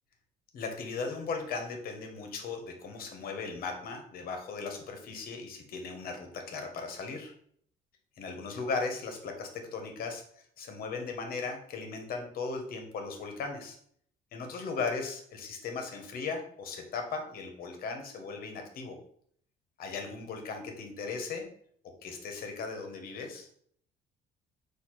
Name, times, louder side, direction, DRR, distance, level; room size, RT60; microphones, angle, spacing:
voice 1, 0.5-7.3 8.2-13.8 14.3-19.0 19.8-21.5 22.0-23.5, left 4 dB, 60° left, 4 dB, 1.0 m, -37 dB
4.2 x 2.6 x 4.5 m, 0.63 s
cardioid pair, 110°, 17 cm